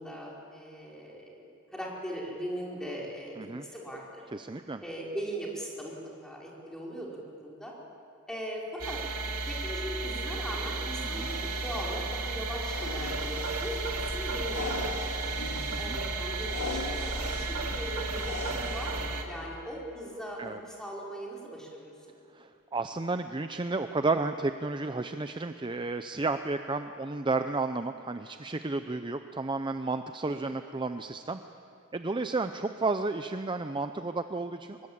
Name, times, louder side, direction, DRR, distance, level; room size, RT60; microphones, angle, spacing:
voice 1, 0.0-4.2 4.8-5.9 6.2-7.7 8.3-9.0 9.5-15.2 15.8-21.9 30.3-30.6, equal, 5° left, -3 dB, 4.7 m, -39 dB
voice 2, 4.3-4.8 11.1-11.3 15.7-16.0 20.4-20.6 22.3-31.4 31.9-34.9, right 3 dB, 20° right, 8 dB, 0.6 m, -32 dB
sound 1, 8.8-19.2, right 3 dB, 80° right, 2.4 m, -33 dB
sound 2, 11.0-19.0, left 2 dB, 85° left, 3.6 m, -40 dB
24.5 x 21.5 x 8.8 m, 2.8 s
head